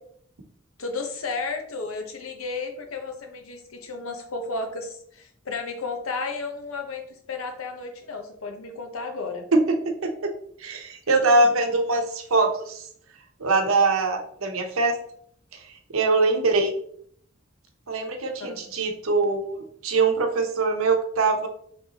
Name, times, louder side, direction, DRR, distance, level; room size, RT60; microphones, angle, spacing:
voice 1, 0.8-7.0 7.3-9.4 18.4-18.6, left 3 dB, 90° left, 5 dB, 0.9 m, -33 dB
voice 2, 9.5-10.1 10.6-12.9 13.4-15.0 15.5-15.6 15.9-16.8 17.9-21.5, right 3 dB, 90° right, 4 dB, 0.8 m, -23 dB
5.5 x 3.3 x 2.9 m, 0.64 s
head